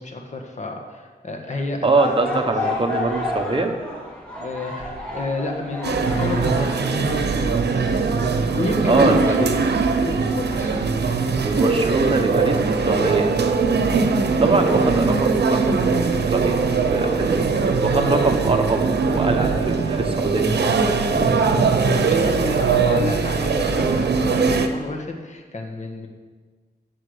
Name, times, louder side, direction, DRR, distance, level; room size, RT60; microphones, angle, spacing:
voice 1, 0.0-1.9 2.3-2.4 4.3-8.0 8.5-9.6 10.0-11.0 13.9-14.1 17.0-17.2 17.9-18.2 21.3-26.1, left 2 dB, 45° left, 2 dB, 1.7 m, -30 dB
voice 2, 1.8-3.7 8.8-9.5 11.4-13.3 14.0-15.9 16.3-16.6 16.9-17.5 17.8-21.3, right 3 dB, 30° right, 4 dB, 1.4 m, -23 dB
sound 1, 1.9-7.1, left 2 dB, 5° left, 2.9 m, -30 dB
sound 2, 5.8-24.7, right 4 dB, 80° right, 1.0 m, -21 dB
14.5 x 7.4 x 5.1 m, 1.4 s
wide cardioid pair, 105°, 17 cm